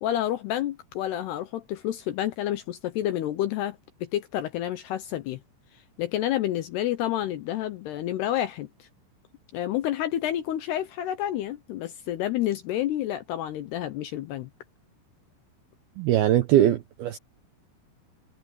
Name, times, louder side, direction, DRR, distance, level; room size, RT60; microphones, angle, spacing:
voice 1, 0.0-5.4 6.0-8.9 9.5-14.5, left 12 dB, 75° left, 2.5 m, -29 dB
voice 2, 16.0-17.2, right 12 dB, 75° right, 2.3 m, -21 dB
omnidirectional pair, 5.6 m